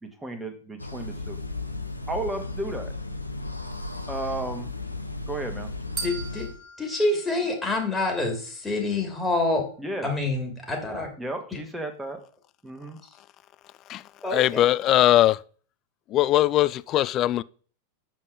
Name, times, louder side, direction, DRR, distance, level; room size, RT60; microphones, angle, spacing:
voice 1, 0.0-1.4 2.1-2.9 4.1-4.7 5.3-5.7 9.8-10.1 11.2-12.2 12.6-13.0, right 2 dB, 10° right, 1.7 m, -33 dB
sound 1, 0.8-6.6, left 2 dB, 85° left, 0.8 m, -35 dB
voice 2, 6.0-6.5 6.8-9.7 10.0-11.1 14.2-14.6, left 2 dB, 10° left, 2.9 m, -27 dB
sound 2, 6.0-8.2, right 5 dB, 30° right, 1.6 m, -39 dB
voice 3, 14.3-15.4 16.1-17.4, left 14 dB, 35° left, 0.3 m, -20 dB
7.4 x 5.5 x 4.8 m
figure-of-eight pair, 90°, 0 cm